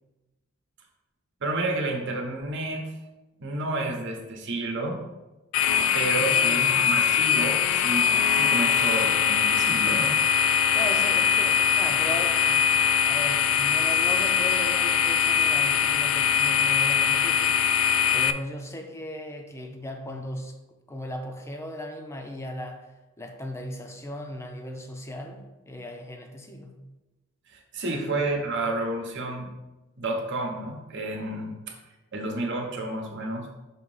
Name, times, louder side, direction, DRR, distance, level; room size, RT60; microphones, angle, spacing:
voice 1, 1.4-2.9 3.4-5.0 5.9-10.2 27.5-29.5 30.0-31.8 32.1-33.5, right 2 dB, 55° right, 1 dB, 1.1 m, -30 dB
sound 1, 5.5-18.3, left 7 dB, 65° left, 0.3 m, -22 dB
voice 2, 6.1-6.9 10.7-12.7 13.0-17.8 18.1-20.5 20.9-22.9 23.2-26.8 27.9-28.1, left 1 dB, 10° left, 3 dB, 0.6 m, -37 dB
6.1 x 3.0 x 5.5 m, 1.1 s
head